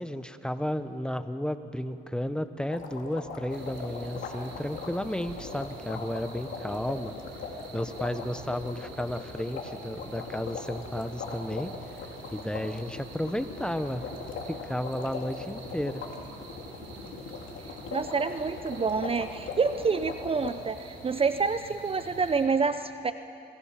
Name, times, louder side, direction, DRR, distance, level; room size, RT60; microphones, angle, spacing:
voice 1, 0.0-7.1 7.7-11.7 12.3-14.0 14.5-16.0, equal, 5° left, 10 dB, 1.0 m, -33 dB
sound 1, 2.7-20.5, left 5 dB, 75° left, 2.9 m, -40 dB
sound 2, 3.5-22.5, right 3 dB, 70° right, 4.4 m, -47 dB
voice 2, 17.9-23.1, right 5 dB, 30° right, 11 dB, 0.6 m, -27 dB
26.5 x 20.5 x 5.9 m, 2.7 s
cardioid pair, 90°, 20 cm